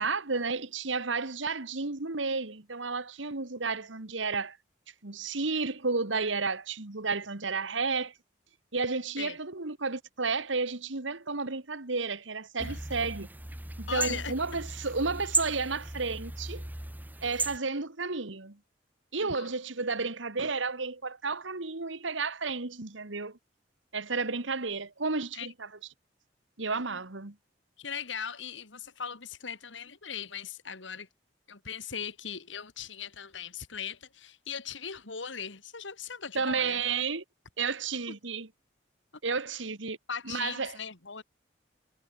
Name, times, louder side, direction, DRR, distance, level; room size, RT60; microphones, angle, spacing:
voice 1, 0.0-4.6 5.0-8.1 8.7-13.3 13.8-16.6 17.2-18.6 19.1-23.4 23.9-25.7 26.6-27.4 36.3-37.2 37.6-38.5 39.2-40.0 40.2-40.8, right 4 dB, 80° right, 1.8 m, -32 dB
sound 1, 12.6-17.6, right 3 dB, 10° right, 0.9 m, -35 dB
voice 2, 13.9-14.3 19.2-19.5 25.3-25.5 27.8-31.1 31.5-36.8 40.1-41.2, left 7 dB, 80° left, 2.3 m, -39 dB
head